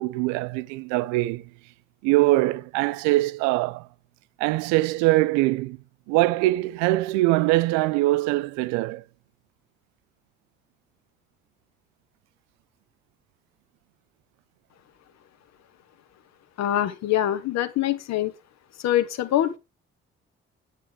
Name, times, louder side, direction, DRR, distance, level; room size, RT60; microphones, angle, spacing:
voice 1, 0.0-1.5 2.0-3.9 4.4-5.8 6.1-9.0, right 19 dB, 60° right, 0.4 m, -22 dB
voice 2, 16.6-18.3 18.8-19.6, left 12 dB, 55° left, 1.0 m, -24 dB
9.2 x 8.4 x 3.3 m
figure-of-eight pair, 40°, 32 cm